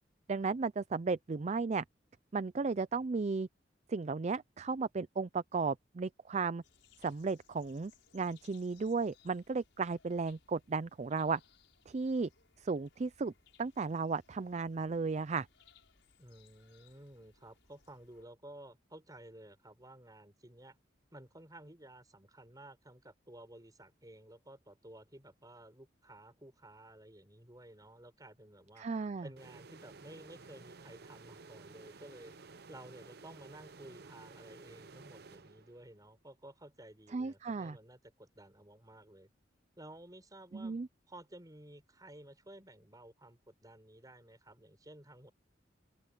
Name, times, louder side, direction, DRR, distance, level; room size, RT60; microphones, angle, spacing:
voice 1, 0.3-1.8 2.3-3.5 3.9-6.6 7.0-11.4 11.9-12.3 12.6-13.3 13.6-15.5 28.8-29.3 37.1-37.8 40.5-40.9, right 4 dB, 40° right, 0.4 m, -34 dB
sound 1, 6.6-18.3, left 6 dB, 80° left, 5.6 m, -67 dB
voice 2, 16.2-20.8 21.1-28.9 29.2-32.3 32.7-39.3 39.8-40.8 41.1-45.3, right 1 dB, 20° right, 5.2 m, -54 dB
sound 2, 29.4-36.0, right 4 dB, 60° right, 0.9 m, -54 dB
open air
head